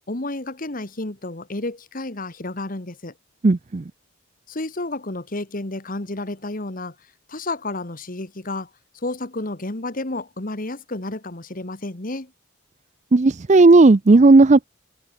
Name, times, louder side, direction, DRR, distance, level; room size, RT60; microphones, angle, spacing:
voice 1, 0.1-3.1 4.5-7.0 7.3-8.7 8.9-12.3, left 2 dB, 40° left, 1.7 m, -31 dB
voice 2, 3.4-3.8 13.1-14.6, right 3 dB, 35° right, 0.5 m, -13 dB
head